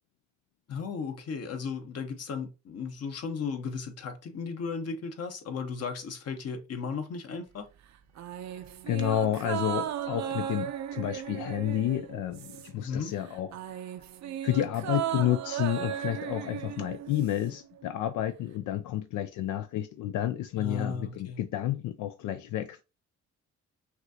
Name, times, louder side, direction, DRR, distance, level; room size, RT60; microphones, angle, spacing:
voice 1, 0.7-7.7 12.8-13.1 20.6-21.4, left 5 dB, 55° left, 1.0 m, -35 dB
sound 1, 8.2-12.9 13.2-17.5 17.8-17.9, right 10 dB, 65° right, 0.6 m, -36 dB
voice 2, 8.5-13.5 14.4-22.8, left 12 dB, 80° left, 0.5 m, -30 dB
5.9 x 2.6 x 2.7 m
cardioid pair, 90°, 30 cm